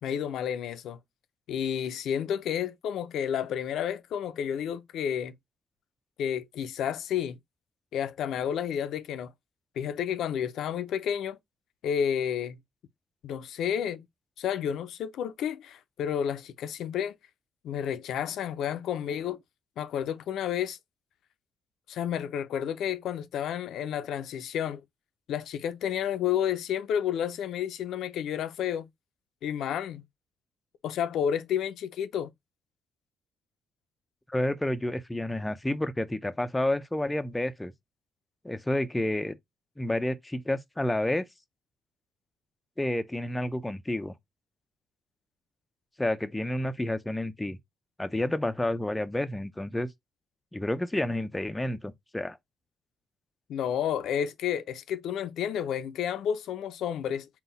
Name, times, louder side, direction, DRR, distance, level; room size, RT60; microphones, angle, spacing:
voice 1, 0.0-1.0 1.5-5.3 6.2-7.4 7.9-9.3 9.8-11.4 11.8-12.6 13.2-14.1 14.4-17.1 17.6-19.4 19.8-20.8 21.9-24.8 25.3-28.9 29.4-30.0 30.8-32.3 53.5-57.3, left 9 dB, 75° left, 0.5 m, -31 dB
voice 2, 34.3-37.7 38.4-39.4 39.8-41.3 42.8-44.1 46.0-47.6 48.0-49.9 50.5-52.4, left 1 dB, 10° left, 0.5 m, -30 dB
3.9 x 2.2 x 3.9 m
cardioid pair, 90°, 0 cm